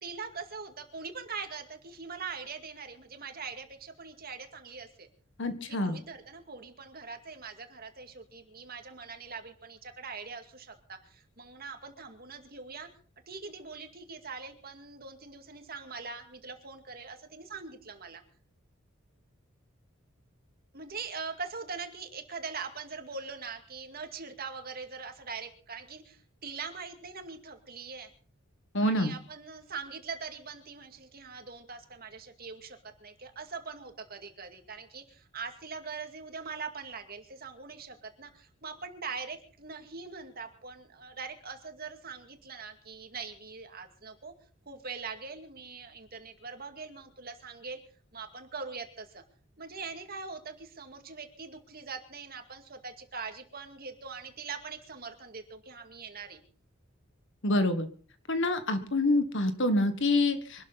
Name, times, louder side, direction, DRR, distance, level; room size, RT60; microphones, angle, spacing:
voice 1, 0.0-5.1 5.7-12.9 13.3-18.2 20.7-28.1 28.8-44.3 44.7-47.8 48.1-49.2 49.6-56.4, right 5 dB, 45° right, 6 dB, 2.3 m, -42 dB
voice 2, 5.4-6.0 28.7-29.1 57.4-57.9 58.3-60.7, left 1 dB, 60° left, 10 dB, 1.5 m, -27 dB
24.5 x 12.5 x 4.1 m, 0.42 s
head